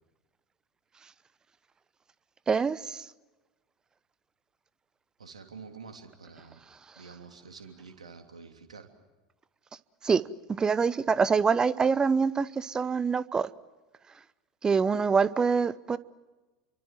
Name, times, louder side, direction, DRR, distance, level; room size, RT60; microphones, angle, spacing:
voice 1, 2.5-3.0 10.0-10.2 10.5-13.5 14.6-16.0, right 5 dB, 20° right, 19 dB, 0.9 m, -25 dB
voice 2, 5.2-6.6 6.9-8.9, right 5 dB, 75° right, 5 dB, 3.1 m, -48 dB
29.5 x 24.5 x 7.6 m, 1.2 s
figure-of-eight pair, 80°, 4 cm